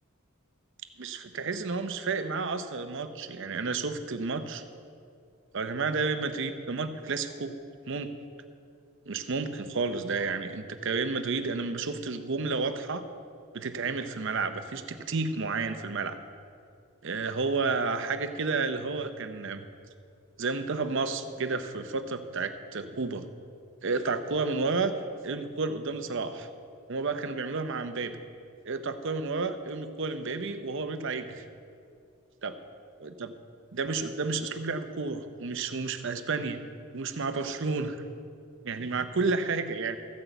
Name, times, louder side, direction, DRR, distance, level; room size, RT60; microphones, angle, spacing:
voice 1, 1.0-4.6 5.5-7.6 7.9-8.1 9.1-13.0 13.5-16.2 17.0-19.6 20.4-23.3 23.8-24.9 25.2-26.5 26.9-28.2 28.6-31.4 32.4-32.5 33.0-33.3 33.7-36.6 36.9-38.0 38.6-40.0, right 4 dB, 60° right, 9 dB, 0.7 m, -31 dB
14.0 x 6.2 x 7.9 m, 2.3 s
head